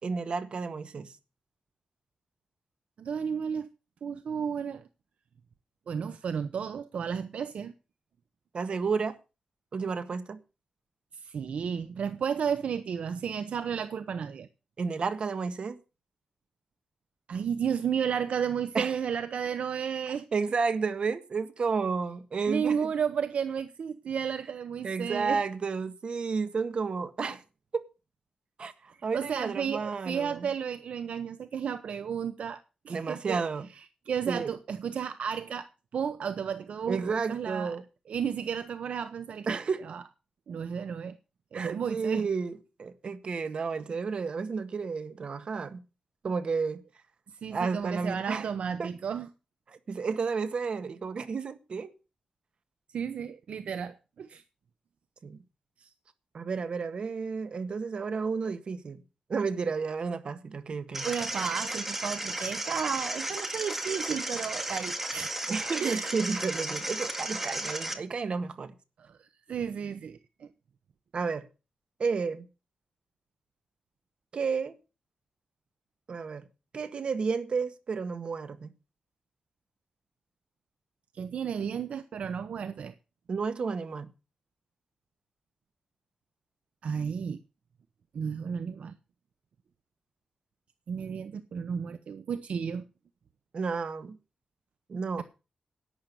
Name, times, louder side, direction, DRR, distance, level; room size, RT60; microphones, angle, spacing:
voice 1, 0.0-1.1 8.5-9.2 9.7-10.4 14.8-15.8 18.7-19.0 20.3-22.9 24.8-27.4 27.7-27.8 28.6-30.5 32.9-33.7 34.3-34.5 36.9-37.8 39.5-39.9 41.5-45.8 46.2-46.8 47.5-48.5 48.8-48.9 49.7-51.9 55.2-55.4 56.3-59.0 59.3-61.1 65.5-68.7 71.1-71.5 72.0-72.5 74.3-74.7 76.1-76.4 76.7-78.7 83.3-84.1 93.5-94.2 94.9-95.2, right 5 dB, 50° right, 1.6 m, -31 dB
voice 2, 3.0-3.7 4.0-4.9 5.9-7.7 11.1-14.5 17.3-20.3 22.5-25.4 29.1-32.6 32.8-33.4 34.1-37.8 38.1-39.6 39.8-40.0 40.5-41.2 41.5-42.3 47.4-49.3 52.9-54.4 55.8-55.9 61.0-65.3 65.8-66.4 69.0-70.5 81.1-82.9 86.8-87.4 88.1-88.9 90.9-92.8 95.2-95.3, right 7 dB, 75° right, 0.8 m, -33 dB
sound 1, 60.9-67.9, right 1 dB, 10° right, 1.9 m, -34 dB
11.5 x 9.0 x 6.7 m
wide cardioid pair, 145°, 2 cm